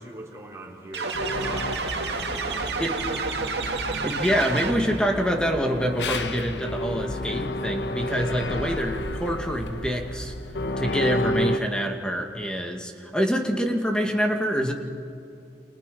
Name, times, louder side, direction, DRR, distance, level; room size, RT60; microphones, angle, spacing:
voice 1, 0.0-3.8, right 1 dB, 15° right, -2 dB, 3.9 m, -43 dB
sound 1, 0.9-5.1, right 4 dB, 70° right, 2.1 m, -30 dB
sound 2, 1.1-11.6, left 1 dB, 80° left, 1.4 m, -31 dB
voice 2, 3.9-10.3 10.8-14.7, equal, 5° left, 2 dB, 2.2 m, -26 dB
29.5 x 27.5 x 5.5 m, 2.6 s
head